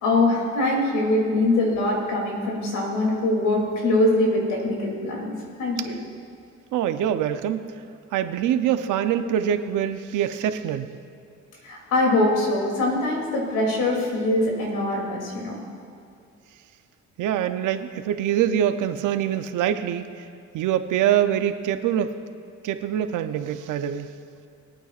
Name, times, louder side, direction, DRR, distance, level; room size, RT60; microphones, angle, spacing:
voice 1, 0.0-6.0 11.6-15.6, left 2 dB, 90° left, -1 dB, 2.9 m, -23 dB
voice 2, 6.7-7.7 8.1-10.9 17.2-20.1 20.5-22.1 22.6-24.1, right 10 dB, 85° right, 9 dB, 0.7 m, -24 dB
22.5 x 8.9 x 2.5 m, 2.5 s
cardioid pair, 90°, 30 cm